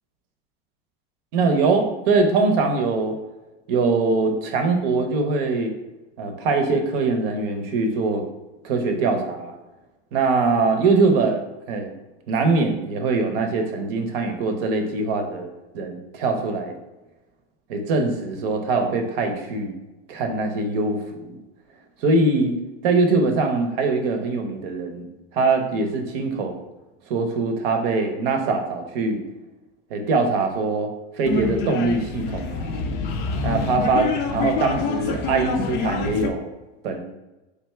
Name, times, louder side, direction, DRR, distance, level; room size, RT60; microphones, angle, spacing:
voice 1, 1.3-3.2 3.7-5.7 6.2-8.2 8.6-9.5 10.1-11.4 11.7-11.9 12.3-16.7 17.7-19.7 20.1-21.4 22.0-25.1 25.3-26.6 27.1-29.2 29.9-30.9 31.1-32.8 33.4-36.4 36.8-37.0, right 3 dB, 65° right, 5 dB, 0.8 m, -22 dB
sound 1, 31.2-36.3, left 5 dB, 35° left, 0.4 m, -26 dB
3.4 x 2.7 x 4.2 m, 1.0 s
supercardioid pair, 145°, 32 cm